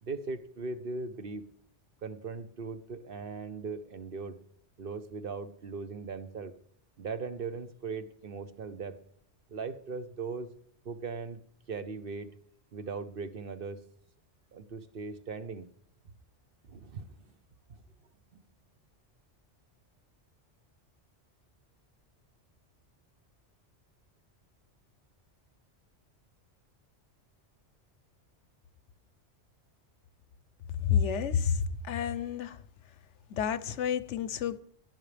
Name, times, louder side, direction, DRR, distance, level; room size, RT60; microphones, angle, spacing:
voice 1, 0.0-1.4 2.0-4.4 4.8-6.5 7.0-9.0 9.5-10.5 10.8-11.4 11.7-12.3 12.7-13.8 14.5-15.7 16.7-17.1 17.7-17.8, right 4 dB, 55° right, 1.0 m, -39 dB
voice 2, 30.8-32.6 33.3-34.6, left 8 dB, 80° left, 1.1 m, -29 dB
18.0 x 11.0 x 3.3 m
omnidirectional pair, 1.2 m